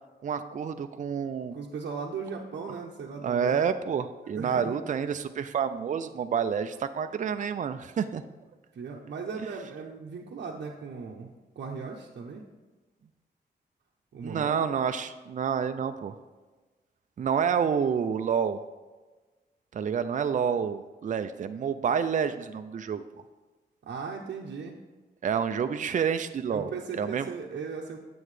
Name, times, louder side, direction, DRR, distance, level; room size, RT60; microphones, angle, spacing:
voice 1, 0.2-1.5 3.2-8.2 14.2-16.2 17.2-18.6 19.7-23.0 25.2-27.3, right 7 dB, 45° right, 9 dB, 0.4 m, -28 dB
voice 2, 1.5-3.6 4.3-4.8 8.7-11.3 11.6-12.4 14.1-14.7 23.8-24.8 26.5-28.0, right 5 dB, 80° right, -2 dB, 0.7 m, -37 dB
9.2 x 7.8 x 3.2 m, 1.3 s
wide cardioid pair, 105°, 18 cm